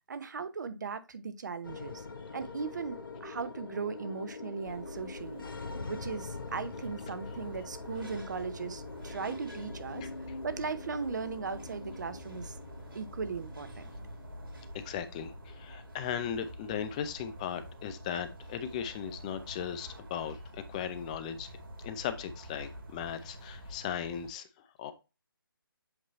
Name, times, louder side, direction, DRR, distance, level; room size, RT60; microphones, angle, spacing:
voice 1, 0.1-2.0 2.3-5.4 5.9-10.1 10.4-12.6 12.9-13.9, right 5 dB, 50° right, 0.8 m, -38 dB
sound 1, 1.6-20.0, left 4 dB, 65° left, 1.1 m, -45 dB
sound 2, 4.6-24.3, equal, 75° right, 2.4 m, -47 dB
voice 2, 14.8-21.5 21.8-24.5 24.8-24.9, left 8 dB, 20° left, 0.5 m, -37 dB
7.9 x 3.0 x 4.0 m
figure-of-eight pair, 145°, 12 cm